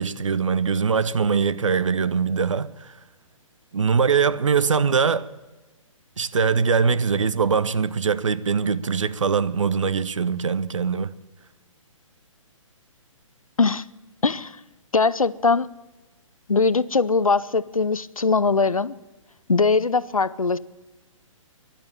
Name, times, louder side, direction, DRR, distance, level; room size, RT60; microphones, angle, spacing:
voice 1, 0.0-2.9 3.7-5.3 6.2-11.1, right 5 dB, 65° right, 0.8 m, -22 dB
voice 2, 14.2-14.6 14.9-15.7 16.5-18.9 19.5-20.6, left 4 dB, 85° left, 0.6 m, -21 dB
15.5 x 12.0 x 7.3 m
figure-of-eight pair, 130°, 17 cm